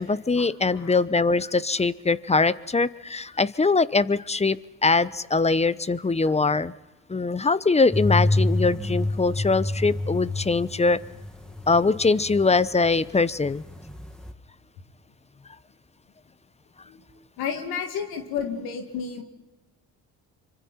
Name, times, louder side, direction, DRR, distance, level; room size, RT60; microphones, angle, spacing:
voice 1, 0.0-6.7 7.1-11.0 11.7-13.6, left 3 dB, 20° left, 17 dB, 0.8 m, -22 dB
sound 1, 7.9-12.9 13.2-14.3, left 2 dB, ahead, 2.0 m, -27 dB
voice 2, 17.4-19.2, left 7 dB, 80° left, 4 dB, 2.5 m, -31 dB
26.0 x 25.0 x 4.4 m, 1.1 s
supercardioid pair, 60°, 36 cm